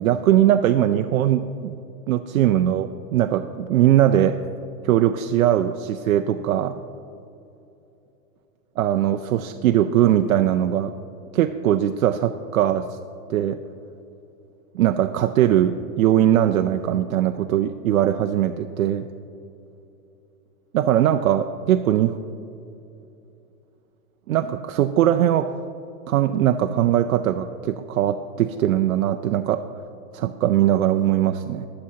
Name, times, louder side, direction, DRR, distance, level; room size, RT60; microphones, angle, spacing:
voice 1, 0.0-1.8 2.1-4.4 4.8-6.9 8.8-10.9 11.3-12.8 13.3-13.6 14.7-19.1 20.7-22.2 24.3-25.5 26.1-29.6 30.1-31.7, right 11 dB, 70° right, 7 dB, 0.6 m, -20 dB
22.5 x 7.7 x 2.8 m, 2.8 s
hypercardioid pair, 155°, 44 cm